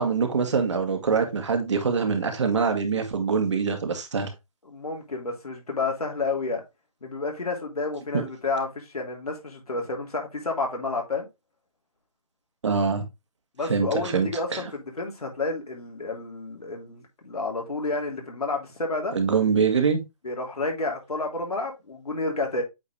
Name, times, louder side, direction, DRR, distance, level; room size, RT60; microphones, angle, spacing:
voice 1, 0.0-4.3 8.1-8.3 12.6-13.0 13.6-14.6 19.1-20.0, right 5 dB, 55° right, 1.9 m, -24 dB
voice 2, 4.7-6.6 7.0-11.3 13.6-19.1 20.2-22.6, left 3 dB, 85° left, 3.1 m, -30 dB
8.3 x 4.0 x 3.3 m
hypercardioid pair, 165°, 19 cm